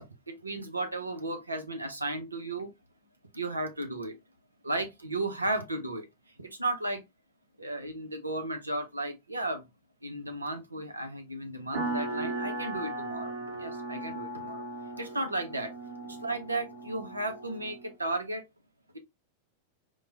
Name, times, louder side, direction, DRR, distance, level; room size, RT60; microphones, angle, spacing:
voice 1, 0.0-2.7 3.3-4.1 4.6-6.0 6.4-7.0 7.6-9.7 10.0-13.3 13.6-14.6 15.0-15.7 16.1-18.4, right 2 dB, 80° right, 0.6 m, -34 dB
sound 1, 11.7-17.9, right 2 dB, 55° right, 1.3 m, -37 dB
4.6 x 2.2 x 2.6 m
figure-of-eight pair, 90°, 0 cm